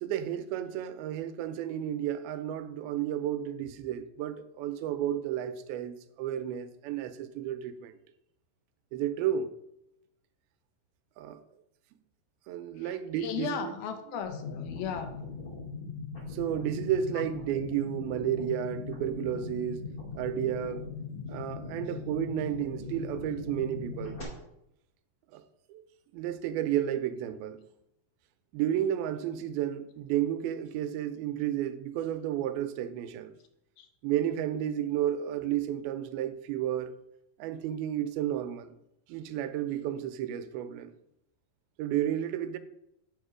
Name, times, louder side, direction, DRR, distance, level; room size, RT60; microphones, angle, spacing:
voice 1, 0.0-8.0 8.9-9.5 11.2-11.4 12.5-13.7 16.3-19.8 20.2-20.9 21.3-24.2 25.3-25.4 25.7-25.8 26.1-27.6 28.5-33.3 34.0-36.9 37.4-38.7 39.1-40.9 41.8-42.6, right 10 dB, 85° right, 2.5 m, -32 dB
voice 2, 12.8-15.2 33.8-33.9, left 7 dB, 80° left, 2.8 m, -36 dB
sound 1, 14.2-24.2, left 4 dB, 25° left, 2.5 m, -40 dB
7.9 x 7.3 x 4.9 m
omnidirectional pair, 4.3 m